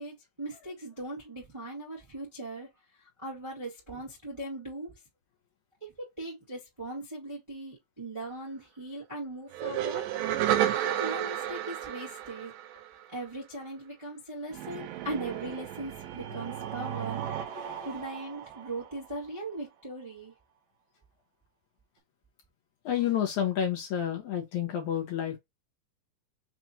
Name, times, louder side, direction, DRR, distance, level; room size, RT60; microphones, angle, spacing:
voice 1, 0.0-2.7 3.2-4.9 5.8-10.1 10.8-12.5 13.1-17.2 17.8-20.3, right 2 dB, 25° right, 0.6 m, -39 dB
sound 1, 9.5-13.2 14.5-19.2, right 11 dB, 80° right, 2.3 m, -33 dB
voice 2, 17.6-17.9 22.9-25.4, left 9 dB, 65° left, 2.0 m, -30 dB
6.0 x 2.5 x 2.7 m
omnidirectional pair, 4.2 m